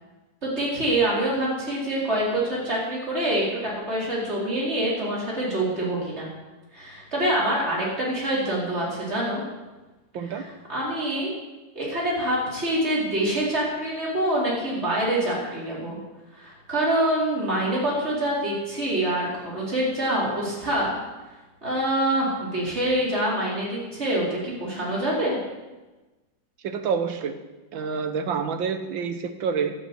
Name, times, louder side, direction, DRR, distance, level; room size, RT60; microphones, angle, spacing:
voice 1, 0.4-6.3 6.7-9.4 10.3-11.3 11.7-16.0 16.3-21.0 21.6-25.4, right 1 dB, 35° right, -5 dB, 4.8 m, -25 dB
voice 2, 26.6-27.4 27.7-29.7, right 6 dB, 85° right, 8 dB, 1.9 m, -27 dB
12.5 x 9.8 x 8.2 m, 1.1 s
omnidirectional pair, 2.0 m